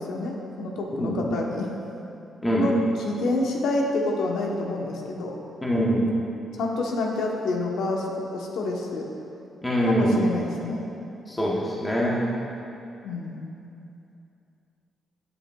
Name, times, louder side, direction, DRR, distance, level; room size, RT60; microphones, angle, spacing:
voice 1, 0.0-1.7 2.6-2.7 3.0-5.4 6.6-8.1 8.3-9.1 9.9-10.8 13.0-13.5, left 2 dB, 90° left, 0 dB, 0.8 m, -28 dB
voice 2, 5.6-6.0 9.6-10.3 11.3-12.2, equal, 10° left, -5 dB, 0.8 m, -23 dB
9.2 x 7.9 x 2.3 m, 2.7 s
wide cardioid pair, 180°, 0 cm